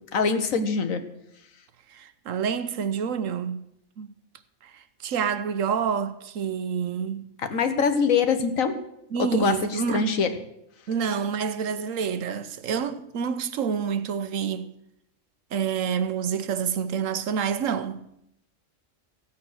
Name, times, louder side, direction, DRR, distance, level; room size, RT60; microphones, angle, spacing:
voice 1, 0.1-1.0 7.4-8.8 9.2-10.3, left 5 dB, 85° left, 1.6 m, -24 dB
voice 2, 1.9-3.6 4.0-4.1 4.6-7.3 9.1-10.0 10.9-14.7 15.5-18.0, right 7 dB, 75° right, 1.2 m, -28 dB
15.5 x 8.6 x 6.4 m
omnidirectional pair, 1.4 m